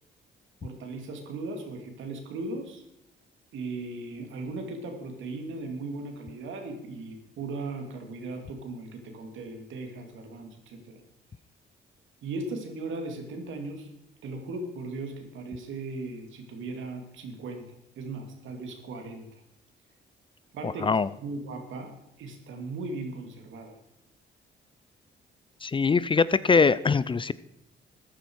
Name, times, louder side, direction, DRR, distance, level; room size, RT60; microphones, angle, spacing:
voice 1, 0.6-2.8 3.5-11.0 12.2-13.9 14.2-17.6 18.0-19.3 20.5-20.8 21.2-21.9 22.2-23.7, right 3 dB, 75° right, 4 dB, 2.6 m, -37 dB
voice 2, 25.6-27.3, left 5 dB, 25° left, 18 dB, 0.4 m, -22 dB
14.0 x 10.0 x 4.7 m, 0.81 s
cardioid pair, 90°, 20 cm